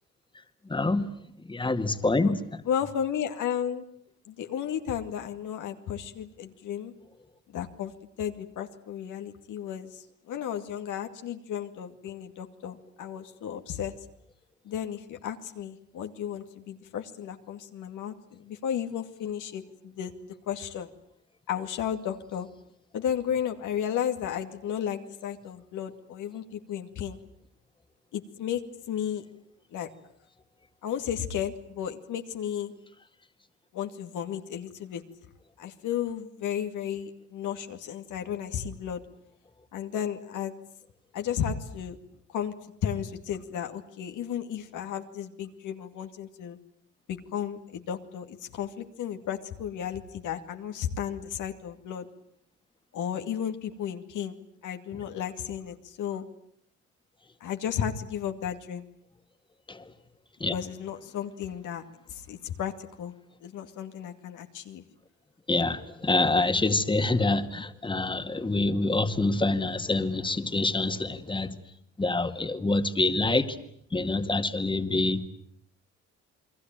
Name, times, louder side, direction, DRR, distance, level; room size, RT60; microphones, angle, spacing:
voice 1, 0.7-1.1 1.5-2.4 59.7-59.8 60.4-60.5 65.5-71.5 72.0-73.6 73.9-75.2, left 2 dB, 15° left, 2.1 m, -26 dB
voice 2, 2.7-3.8 4.3-6.9 7.5-7.9 8.2-13.9 14.6-20.1 20.5-20.9 21.5-22.5 22.9-27.2 28.1-28.6 28.9-29.2 29.7-29.9 30.8-32.7 33.7-35.0 35.6-39.0 39.7-40.5 41.1-42.0 42.3-42.5 42.8-46.6 47.1-52.1 52.9-54.4 54.6-56.2 57.4-58.8 60.5-61.8 62.1-62.7 63.0-63.1 63.4-64.8, left 9 dB, 80° left, 2.4 m, -33 dB
29.5 x 21.5 x 9.1 m
cardioid pair, 90°, 30 cm